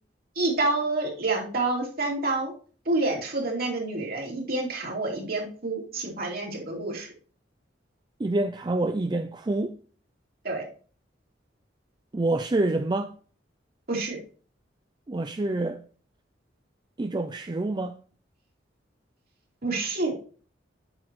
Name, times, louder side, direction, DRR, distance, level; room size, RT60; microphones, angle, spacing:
voice 1, 0.4-2.5 2.9-7.1 10.4-10.6 13.9-14.2 19.6-20.1, right 2 dB, 55° right, 2.8 m, -28 dB
voice 2, 8.2-9.8 12.1-13.1 15.1-15.8 17.0-18.0, right 2 dB, 25° right, 0.4 m, -27 dB
8.7 x 6.2 x 3.1 m
head